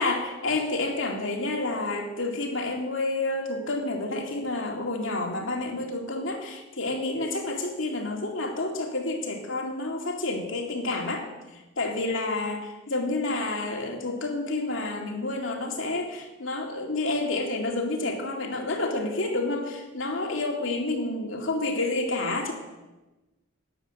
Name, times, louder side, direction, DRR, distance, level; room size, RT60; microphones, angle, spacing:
voice 1, 0.0-11.3 11.5-22.5, left 2 dB, 70° left, 2 dB, 2.4 m, -29 dB
12.5 x 10.0 x 7.8 m, 1.1 s
head